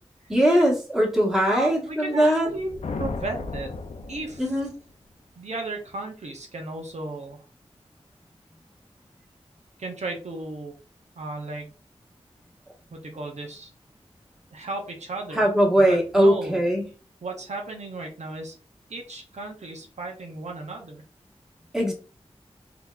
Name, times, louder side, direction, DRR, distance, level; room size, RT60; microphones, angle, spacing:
voice 1, 0.3-2.5 4.4-4.7 15.3-16.8 21.7-21.9, equal, 5° right, -2 dB, 1.4 m, -20 dB
voice 2, 1.5-3.7 4.1-4.6 5.4-7.4 9.8-10.7 11.2-11.7 12.9-13.7 14.5-15.5 15.8-16.6 17.2-18.6 18.9-21.0, right 2 dB, 85° right, 2 dB, 0.7 m, -35 dB
sound 1, 2.4-4.9, left 3 dB, 75° left, 0.4 m, -35 dB
3.7 x 2.9 x 2.3 m, 0.36 s
wide cardioid pair, 65°, 11 cm